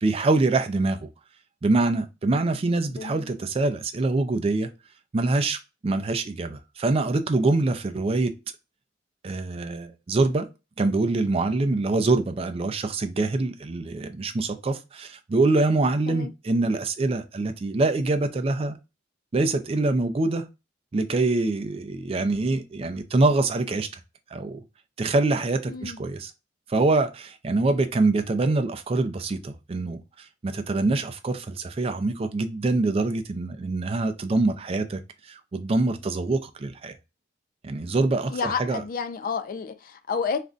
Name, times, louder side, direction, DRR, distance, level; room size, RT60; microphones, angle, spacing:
voice 1, 0.0-1.1 1.6-4.7 5.1-8.3 9.2-10.5 10.8-18.8 19.3-20.5 20.9-23.9 24.3-24.6 25.0-26.3 26.7-36.9 37.6-38.8, right 2 dB, 30° right, 0.3 m, -25 dB
voice 2, 3.0-3.3 16.1-16.3 25.7-26.0 38.3-40.4, left 5 dB, 45° left, 0.3 m, -30 dB
2.5 x 2.2 x 3.7 m
head